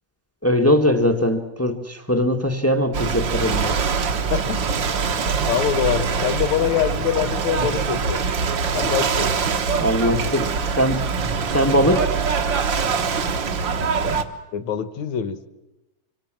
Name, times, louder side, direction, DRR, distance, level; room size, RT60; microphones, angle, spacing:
voice 1, 0.4-3.8 9.8-11.0 11.5-12.1, equal, 10° left, 5 dB, 0.8 m, -20 dB
Ocean / Boat Water vehicle, 2.9-14.2, right 5 dB, 50° right, 1.6 m, -23 dB
voice 2, 4.3-4.7 5.5-8.3 8.7-9.3 14.0-14.2 14.5-15.4, left 9 dB, 65° left, 13 dB, 2.5 m, -24 dB
26.5 x 25.5 x 7.7 m, 0.98 s
omnidirectional pair, 3.6 m